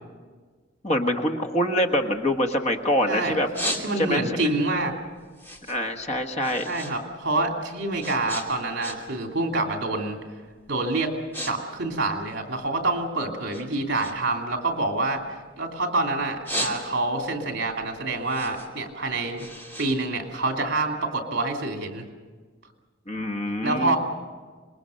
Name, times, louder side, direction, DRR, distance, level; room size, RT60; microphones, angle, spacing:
voice 1, 0.8-3.5 4.0-4.2 5.7-6.7 23.1-24.0, left 1 dB, 35° left, 5 dB, 1.5 m, -25 dB
sound 1, 1.8-2.9 3.3-4.3 4.8-7.0 7.2-9.3 9.6-9.9 10.5-10.7 11.0-11.5 11.8-13.0 13.5-15.8 16.2-17.3 17.7-20.8, equal, 10° left, 2.6 m, -35 dB
voice 2, 3.1-3.4 3.8-4.9 6.7-10.2 10.7-11.1 11.4-19.5 19.8-22.0 23.6-24.0, right 2 dB, 60° right, 2 dB, 3.0 m, -27 dB
26.0 x 21.0 x 6.5 m, 1.5 s
head